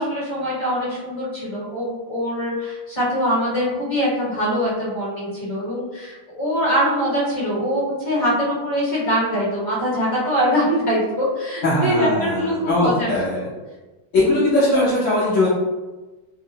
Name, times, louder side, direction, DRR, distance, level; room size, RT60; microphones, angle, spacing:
voice 1, 0.0-13.1 13.3-13.4, equal, 20° left, -7 dB, 1.0 m, -23 dB
voice 2, 11.6-13.5 14.1-15.5, left 2 dB, 75° left, -9 dB, 0.7 m, -20 dB
3.6 x 2.0 x 2.8 m, 1.2 s
omnidirectional pair, 2.2 m